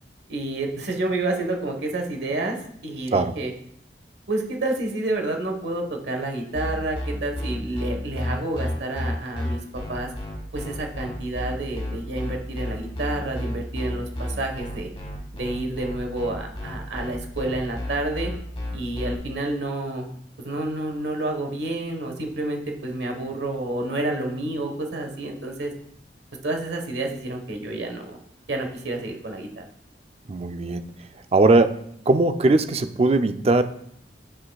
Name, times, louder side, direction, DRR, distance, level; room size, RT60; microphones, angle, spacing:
voice 1, 0.3-2.6 2.8-3.5 4.3-9.6 9.9-10.1 10.5-14.9 15.3-18.3 18.7-20.1 20.4-25.7 26.4-28.2 28.5-29.6, right 2 dB, 75° right, 3 dB, 1.3 m, -29 dB
sound 1, 6.5-19.2, left 1 dB, 30° left, 1.9 m, -31 dB
voice 2, 30.3-30.9 31.3-33.6, right 2 dB, 35° right, 9 dB, 0.4 m, -20 dB
9.3 x 6.4 x 2.3 m, 0.69 s
head